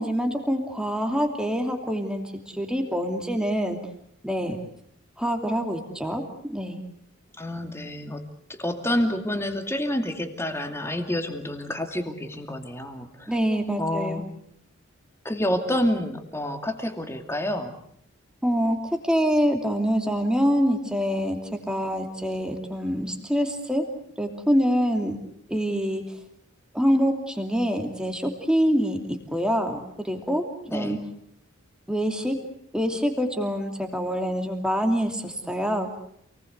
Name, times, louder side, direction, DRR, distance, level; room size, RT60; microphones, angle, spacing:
voice 1, 0.0-2.2 2.5-3.8 4.2-4.6 5.2-6.2 6.5-6.8 13.3-14.2 18.4-18.8 19.0-23.8 24.2-25.2 25.5-26.0 26.7-30.4 30.7-31.0 31.9-32.3 32.7-36.0, equal, 5° right, 4 dB, 2.9 m, -25 dB
voice 2, 7.3-13.4 13.8-14.3 15.2-17.8 30.7-31.0, left 1 dB, 10° left, 5 dB, 2.5 m, -28 dB
28.0 x 19.5 x 8.2 m, 0.71 s
head